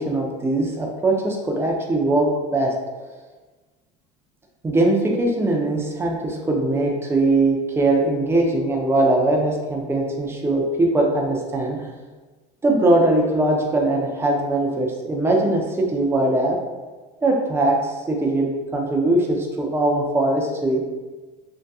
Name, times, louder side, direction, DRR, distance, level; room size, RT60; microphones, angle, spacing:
voice 1, 0.0-2.7 4.6-11.8 12.6-16.6 17.2-20.8, right 2 dB, 10° right, 0 dB, 0.5 m, -21 dB
2.7 x 2.2 x 3.4 m, 1.3 s
cardioid pair, 125°, 20 cm